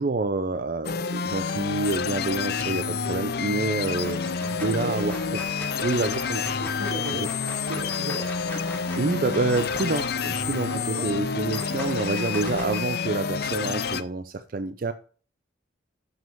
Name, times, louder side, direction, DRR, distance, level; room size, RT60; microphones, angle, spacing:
voice 1, 0.0-5.4 5.8-6.5 7.1-7.3 9.0-14.9, right 3 dB, 45° right, 0.4 m, -28 dB
sound 1, 0.8-14.0, left 5 dB, 50° left, 0.5 m, -29 dB
sound 2, 3.3-3.6 4.0-12.8, left 1 dB, 10° left, 2.7 m, -41 dB
voice 2, 4.8-5.1 6.6-7.3 7.7-8.3 10.7-11.1, right 1 dB, 90° right, 3.8 m, -35 dB
7.2 x 6.2 x 6.9 m
head